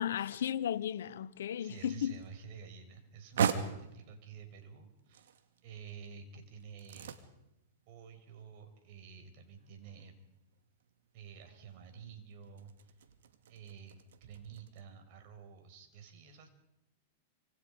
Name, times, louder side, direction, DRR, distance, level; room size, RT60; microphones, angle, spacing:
voice 1, 0.0-2.2, left 9 dB, 75° left, 1.1 m, -35 dB
voice 2, 1.6-5.3 5.6-7.1 7.9-10.2 11.1-12.9 13.5-16.5, right 7 dB, 55° right, 6.0 m, -51 dB
sound 1, 1.6-14.8, right 7 dB, 75° right, 2.3 m, -42 dB
28.0 x 26.5 x 5.4 m
hypercardioid pair, 110°, 0 cm